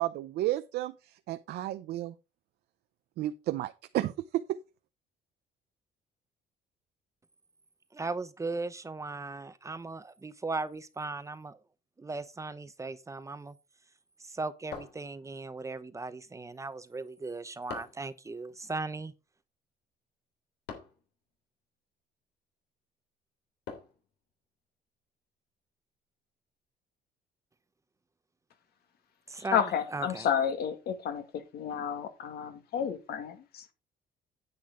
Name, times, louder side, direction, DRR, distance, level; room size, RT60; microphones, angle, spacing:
voice 1, 0.0-2.1 3.2-4.4, right 14 dB, 75° right, 0.7 m, -32 dB
voice 2, 7.9-11.6 12.0-13.5 14.2-19.1 29.3-29.6 29.9-30.3, right 3 dB, 20° right, 0.8 m, -37 dB
sound 1, 14.7-15.6 17.7-18.1 20.7-21.1 23.7-24.1, left 6 dB, 85° left, 3.1 m, -44 dB
voice 3, 29.5-31.2 31.5-33.7, left 8 dB, 65° left, 2.1 m, -31 dB
9.6 x 8.6 x 3.8 m
cardioid pair, 110°, 17 cm